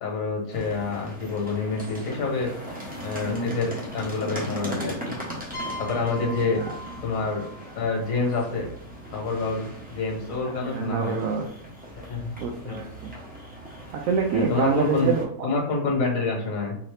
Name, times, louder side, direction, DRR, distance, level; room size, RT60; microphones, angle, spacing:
voice 1, 0.0-2.6 3.0-5.1 5.8-6.6 7.0-7.5 7.7-8.6 9.1-11.1 12.0-12.3 12.6-12.8 14.3-15.1 15.4-16.8, left 3 dB, 55° left, -1 dB, 1.5 m, -27 dB
sound 1, 0.5-15.2, equal, 10° right, 0.6 m, -39 dB
voice 2, 3.2-3.6 6.2-6.7 10.4-11.5 12.4-13.1 13.9-15.5, right 5 dB, 70° right, 2 dB, 0.8 m, -27 dB
sound 2, 5.5-9.2, left 1 dB, 35° left, 1.0 m, -41 dB
3.9 x 2.7 x 3.3 m, 0.67 s
omnidirectional pair, 1.8 m